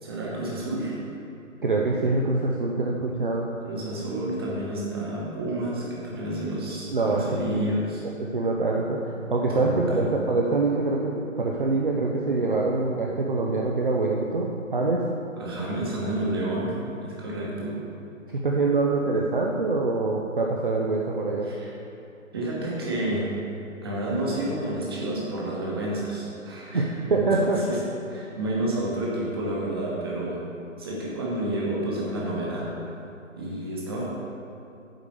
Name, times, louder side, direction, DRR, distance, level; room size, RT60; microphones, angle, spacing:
voice 1, 0.0-1.0 3.6-8.0 9.5-10.1 15.4-17.8 21.4-21.7 22.3-23.3 23.8-26.8 27.1-27.8 28.1-30.5 30.8-32.7 33.4-34.1, right 1 dB, 20° right, -5 dB, 1.2 m, -30 dB
voice 2, 1.6-3.5 6.9-7.7 8.3-15.1 17.4-17.5 18.3-21.5 26.7-26.8 27.1-27.6, right 3 dB, 40° right, -1 dB, 0.7 m, -25 dB
9.0 x 4.7 x 6.8 m, 2.7 s
figure-of-eight pair, 150°, 41 cm